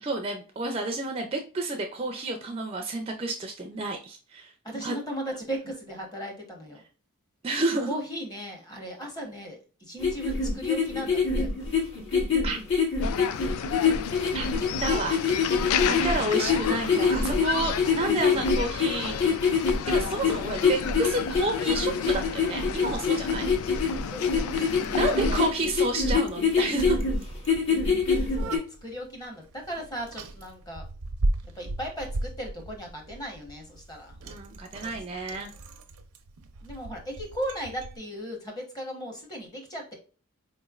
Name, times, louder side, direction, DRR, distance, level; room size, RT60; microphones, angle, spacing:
voice 1, 0.0-5.0 7.4-7.9 12.4-12.6 14.3-14.5 14.8-15.2 15.9-19.4 19.9-23.5 25.0-27.0 28.1-28.3 34.2-35.5, right 2 dB, 25° right, 4 dB, 0.4 m, -30 dB
voice 2, 4.6-6.8 7.9-11.5 16.6-17.1 21.3-21.4 24.1-25.5 28.4-30.8 31.6-34.2 34.7-34.9 36.6-39.9, equal, 20° left, 2 dB, 0.8 m, -37 dB
sound 1, 10.0-28.6, left 5 dB, 60° left, 1.6 m, -25 dB
sound 2, 13.0-25.5, left 8 dB, 80° left, 0.3 m, -33 dB
Bicycle, 21.7-38.0, right 2 dB, 90° right, 0.5 m, -38 dB
4.3 x 3.1 x 2.3 m, 0.37 s
head